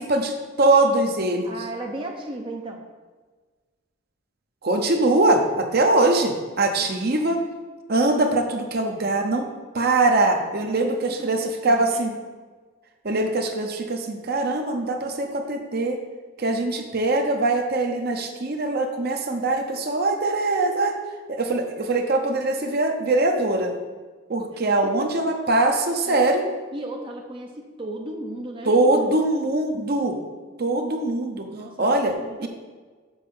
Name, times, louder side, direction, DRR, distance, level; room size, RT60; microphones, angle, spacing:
voice 1, 0.0-1.5 4.6-7.4 7.9-9.5 9.7-12.1 13.0-16.0 16.4-21.0 21.3-23.7 24.3-26.4 28.7-30.2 30.6-31.5 31.8-32.1 32.4-32.5, right 2 dB, 50° right, 4 dB, 0.9 m, -22 dB
voice 2, 1.4-2.8 6.6-6.9 10.7-12.1 24.5-24.9 26.1-26.4 26.7-28.9 31.5-31.9 32.2-32.5, right 1 dB, 25° right, 0 dB, 0.8 m, -36 dB
7.2 x 5.6 x 5.6 m, 1.4 s
head